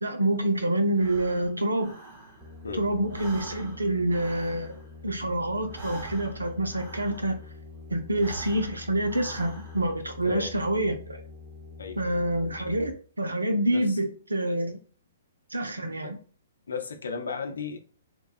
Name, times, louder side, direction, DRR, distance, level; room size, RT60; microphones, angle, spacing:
voice 1, 0.0-1.9 2.7-4.8 5.0-7.4 7.9-11.2 12.0-14.8 15.5-16.2, right 1 dB, 85° right, 0.6 m, -27 dB
Breathing, 0.9-2.7 3.0-7.6 8.1-10.0, right 2 dB, 45° right, 1.5 m, -45 dB
sound 1, 2.4-12.9, left 4 dB, ahead, 0.7 m, -45 dB
voice 2, 13.7-14.0 16.0-16.1 16.7-17.8, left 5 dB, 75° left, 0.5 m, -35 dB
2.8 x 2.3 x 2.4 m
figure-of-eight pair, 120°, 0 cm